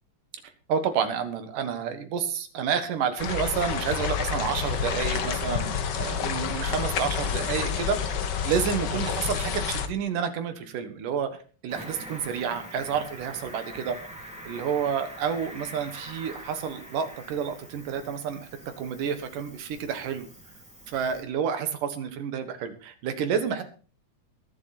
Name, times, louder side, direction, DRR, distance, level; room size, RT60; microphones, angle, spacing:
voice 1, 0.7-8.0 8.4-14.0 14.5-18.5 18.8-20.3 20.9-23.6, right 7 dB, 90° right, 9 dB, 3.1 m, -29 dB
sound 1, 3.2-9.9, left 7 dB, 90° left, 0.9 m, -29 dB
Cricket, 11.7-21.2, equal, ahead, 2.5 m, -44 dB
21.5 x 7.5 x 4.3 m, 0.38 s
omnidirectional pair, 3.6 m